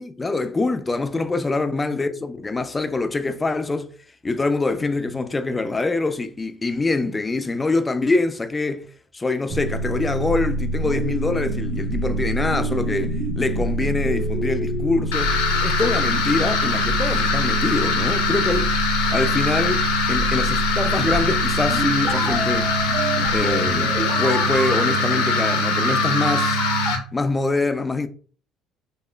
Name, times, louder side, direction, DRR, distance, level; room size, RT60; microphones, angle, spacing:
voice 1, 0.0-3.9 4.2-8.8 9.1-15.3 15.6-18.7 19.1-22.7 23.3-26.6 27.1-28.1, left 3 dB, 20° left, 0.3 m, -24 dB
sound 1, 9.5-26.9, right 2 dB, 30° right, 0.9 m, -25 dB
sound 2, 15.1-27.0, left 5 dB, 90° left, 0.5 m, -23 dB
2.9 x 2.3 x 2.2 m
supercardioid pair, 75°, 0 cm